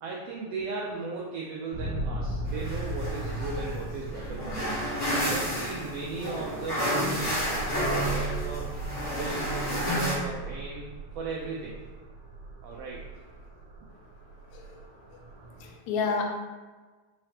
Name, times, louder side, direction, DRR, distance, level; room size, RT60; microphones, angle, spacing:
voice 1, 0.0-4.8 5.1-8.7 9.2-10.9 11.2-11.8 12.6-13.0, right 3 dB, 90° right, -3 dB, 1.4 m, -37 dB
sound 1, 1.7-15.7, right 2 dB, 65° right, 1.6 m, -38 dB
sound 2, 2.5-10.1, equal, 60° left, 0.7 m, -31 dB
voice 2, 15.6-16.2, left 5 dB, 85° left, 1 dB, 2.0 m, -30 dB
4.8 x 3.2 x 2.8 m, 1.3 s
omnidirectional pair, 3.3 m